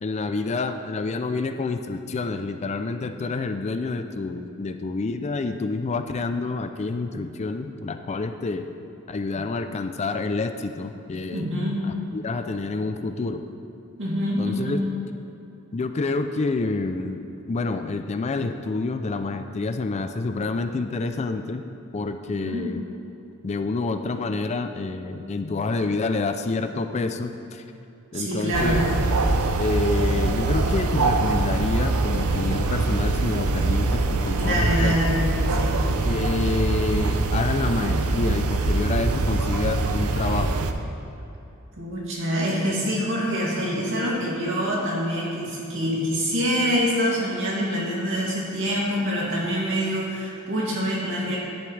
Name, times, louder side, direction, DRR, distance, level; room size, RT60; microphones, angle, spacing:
voice 1, 0.0-8.7 9.1-11.5 11.8-13.5 14.4-14.8 15.7-21.6 21.9-22.8 23.4-27.6 28.1-28.8 29.6-35.0 36.1-40.5, left 3 dB, 30° left, 8 dB, 0.4 m, -28 dB
voice 2, 11.3-11.8 14.0-14.8 22.4-22.6 28.1-28.8 34.4-35.2 35.5-35.8 41.8-51.4, equal, 60° right, -4 dB, 2.4 m, -25 dB
sound 1, 28.5-40.7, right 3 dB, 85° right, 0.6 m, -23 dB
11.0 x 10.5 x 3.3 m, 2.9 s
head